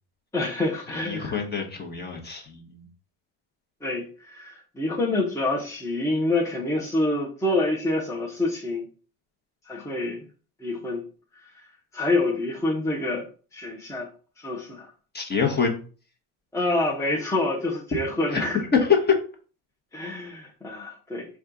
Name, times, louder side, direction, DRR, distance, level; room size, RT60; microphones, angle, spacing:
voice 1, 0.3-1.4 3.8-8.9 9.7-10.2 10.6-11.0 11.4-11.6 11.9-13.2 13.5-14.1 14.4-14.9 16.5-18.6 19.9-21.3, left 2 dB, 5° left, -3 dB, 0.7 m, -27 dB
voice 2, 0.9-2.9 15.1-15.8 18.3-19.2, left 6 dB, 25° left, 2 dB, 1.0 m, -25 dB
4.2 x 2.4 x 3.8 m, 0.39 s
cardioid pair, 110°, 41 cm